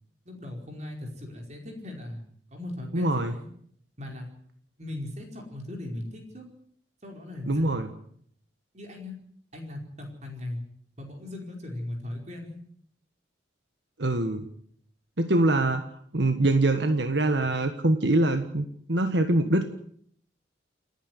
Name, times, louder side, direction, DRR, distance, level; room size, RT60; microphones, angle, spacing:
voice 1, 0.2-2.2 2.5-3.5 4.0-4.3 4.8-6.4 7.0-7.6 8.7-9.2 9.5-10.6 11.0-12.6, left 1 dB, 40° right, 2 dB, 4.9 m, -38 dB
voice 2, 2.9-3.3 7.5-7.9 14.0-14.4 15.2-15.8 16.1-19.6, right 2 dB, 70° right, 7 dB, 1.6 m, -24 dB
29.5 x 10.5 x 9.9 m, 0.64 s
head